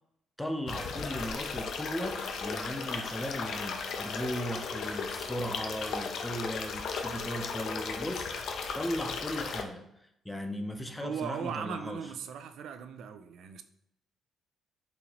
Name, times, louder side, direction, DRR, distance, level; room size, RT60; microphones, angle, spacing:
voice 1, 0.4-9.8 10.2-12.1, equal, 5° left, 5 dB, 0.5 m, -37 dB
sound 1, 0.7-9.6, left 5 dB, 70° left, 0.4 m, -36 dB
voice 2, 11.0-13.6, right 7 dB, 75° right, 9 dB, 0.3 m, -38 dB
4.0 x 2.8 x 2.9 m, 0.78 s
cardioid pair, 90°, 0 cm